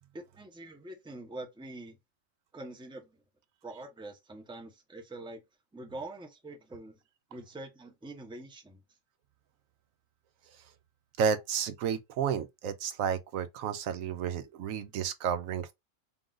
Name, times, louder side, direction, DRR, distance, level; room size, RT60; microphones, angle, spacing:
voice 1, 0.1-2.0 2.5-3.2 3.6-5.4 5.7-7.0 7.3-8.8, right 2 dB, 5° right, 0.7 m, -44 dB
voice 2, 11.2-15.7, right 7 dB, 85° right, 1.0 m, -31 dB
3.8 x 2.4 x 3.8 m
omnidirectional pair, 1.4 m